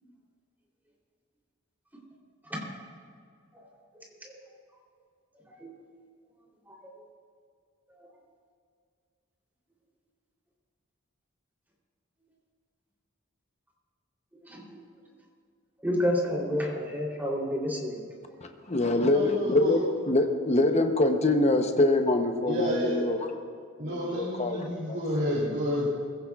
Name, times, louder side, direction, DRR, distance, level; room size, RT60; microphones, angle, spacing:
voice 1, 3.9-4.4 5.5-5.7 6.7-7.1 7.9-8.1 14.4-14.8 15.8-18.0, equal, 10° right, -3 dB, 3.2 m, -31 dB
voice 2, 18.4-23.3 23.8-25.0, left 2 dB, 35° left, 5 dB, 0.8 m, -25 dB
voice 3, 19.0-19.8 22.5-22.9 23.8-25.9, equal, 55° right, -5 dB, 3.0 m, -30 dB
21.0 x 16.0 x 2.4 m, 2.2 s
head